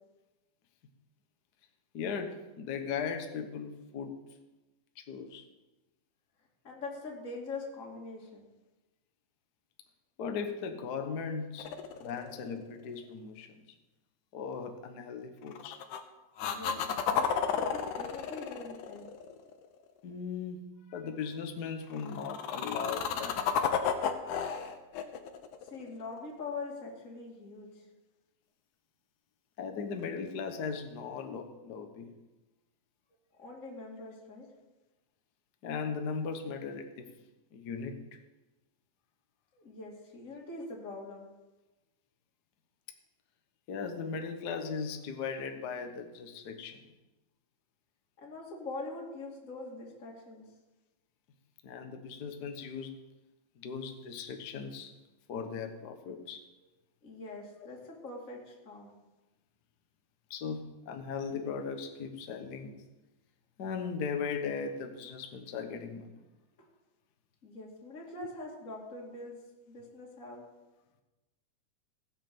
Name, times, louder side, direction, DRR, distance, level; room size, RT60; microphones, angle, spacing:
voice 1, 1.9-4.2 5.0-5.4 10.2-13.6 14.3-15.8 20.0-20.6 20.9-23.8 29.6-32.1 35.6-37.1 37.5-38.0 43.7-46.9 51.6-53.0 53.6-54.9 55.3-56.4 60.3-62.8 63.6-66.1 68.2-68.3, left 5 dB, 60° left, 6 dB, 1.0 m, -38 dB
voice 2, 6.6-8.5 16.4-19.1 25.6-27.8 33.4-34.5 39.5-41.3 48.2-50.5 57.0-58.9 66.6-66.7 67.4-69.4 69.7-70.4, left 3 dB, 25° left, -2 dB, 2.7 m, -43 dB
sound 1, 11.6-12.8 15.5-16.0 16.4-19.7 21.9-26.3 30.0-30.1, left 7 dB, 75° left, 2.4 m, -32 dB
16.0 x 6.7 x 7.7 m, 1.1 s
omnidirectional pair, 3.6 m